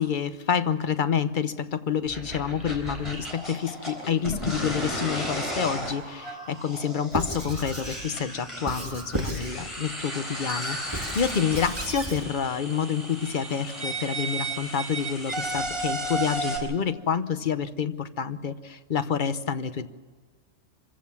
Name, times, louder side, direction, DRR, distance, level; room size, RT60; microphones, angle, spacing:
voice 1, 0.0-19.9, left 7 dB, 45° left, 11 dB, 0.9 m, -28 dB
sound 1, 2.1-16.6, right 1 dB, 25° left, 4.0 m, -34 dB
Squeak / Writing, 7.1-8.0 8.7-9.5 10.0-12.2, right 1 dB, 20° right, 1.8 m, -34 dB
25.5 x 15.0 x 7.2 m, 1.4 s
omnidirectional pair, 1.2 m